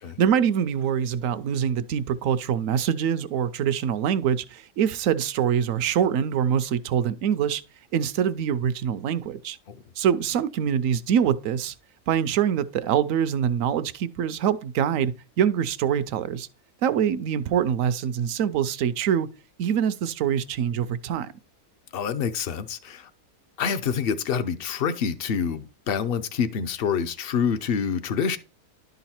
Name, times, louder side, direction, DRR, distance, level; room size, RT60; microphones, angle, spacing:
voice 1, 0.2-7.6 7.9-9.6 10.0-11.7 12.1-16.5 16.8-19.3 19.6-21.3, right 8 dB, 70° right, 0.9 m, -24 dB
voice 2, 21.9-23.1 23.6-28.4, left 6 dB, 55° left, 0.7 m, -27 dB
11.5 x 4.0 x 4.3 m
omnidirectional pair, 1.5 m